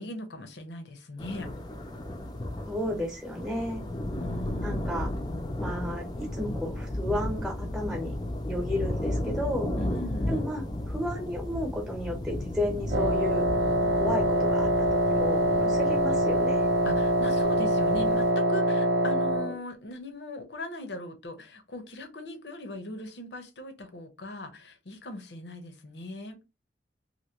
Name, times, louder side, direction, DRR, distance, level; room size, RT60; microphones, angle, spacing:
voice 1, 0.0-1.5 4.1-5.2 9.8-10.4 16.8-26.4, left 1 dB, 80° left, 0.8 m, -39 dB
sound 1, 1.2-18.3, left 1 dB, 25° left, 0.5 m, -34 dB
voice 2, 2.7-3.8 4.6-5.1 5.6-8.1 8.5-9.7 10.3-13.5 13.9-16.7, left 1 dB, 5° right, 0.9 m, -33 dB
Wind instrument woodwind instrument, 12.9-19.6, right 1 dB, 80° right, 0.7 m, -24 dB
2.9 x 2.7 x 2.8 m
head